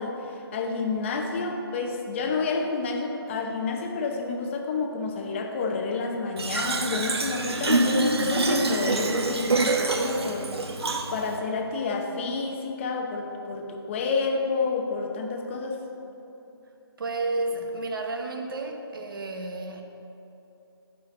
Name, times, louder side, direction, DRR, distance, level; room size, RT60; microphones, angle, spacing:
voice 1, 0.0-10.8 11.1-15.8, left 4 dB, 30° left, 3 dB, 0.9 m, -29 dB
Fill (with liquid), 6.4-11.4, right 2 dB, 80° right, 1.1 m, -26 dB
voice 2, 17.0-19.8, right 2 dB, 60° right, 4 dB, 1.3 m, -31 dB
11.0 x 4.9 x 8.3 m, 2.9 s
hypercardioid pair, 155°, 13 cm